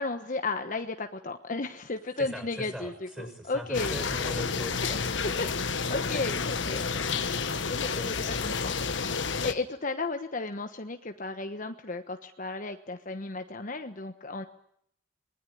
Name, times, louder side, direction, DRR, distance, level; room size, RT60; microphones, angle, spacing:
voice 1, 0.0-4.0 5.2-7.1 7.7-14.4, left 3 dB, 45° left, 7 dB, 1.2 m, -34 dB
voice 2, 2.2-5.5 6.0-6.5 7.9-8.4, equal, 5° right, 6 dB, 6.3 m, -41 dB
sound 1, 3.7-9.5, left 5 dB, 75° left, 1.4 m, -30 dB
26.0 x 20.5 x 10.0 m, 0.71 s
head